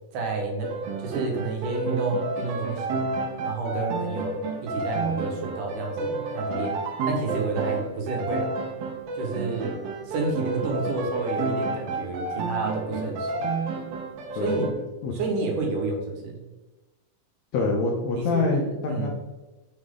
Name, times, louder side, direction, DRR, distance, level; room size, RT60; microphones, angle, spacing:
voice 1, 0.1-0.7 1.0-3.1 3.4-6.8 7.1-8.5 9.2-9.7 10.0-13.5 14.3-14.7 15.1-16.4 18.1-19.1, right 3 dB, 70° right, 1 dB, 2.8 m, -30 dB
sound 1, 0.6-14.7, right 3 dB, 85° right, 2.8 m, -31 dB
voice 2, 17.5-19.1, left 3 dB, 70° left, 0 dB, 1.7 m, -25 dB
7.7 x 6.0 x 3.7 m, 1.1 s
omnidirectional pair, 4.1 m